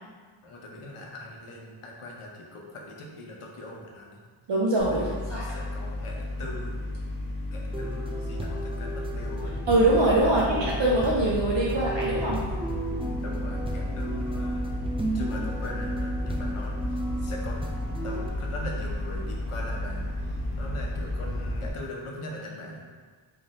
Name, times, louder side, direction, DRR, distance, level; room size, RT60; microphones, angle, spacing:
voice 1, 0.4-4.2 4.9-6.8 7.5-9.5 10.2-10.5 13.2-14.6 15.1-17.7 18.0-22.9, left 1 dB, 90° left, -1 dB, 0.7 m, -41 dB
voice 2, 4.5-5.4 9.7-12.4, right 1 dB, 60° right, -4 dB, 0.6 m, -23 dB
sound 1, 4.8-21.7, left 1 dB, 50° left, 1.0 m, -32 dB
sound 2, 7.7-18.3, right 2 dB, 15° right, 0.3 m, -35 dB
3.1 x 2.6 x 3.9 m, 1.5 s
wide cardioid pair, 65°, 50 cm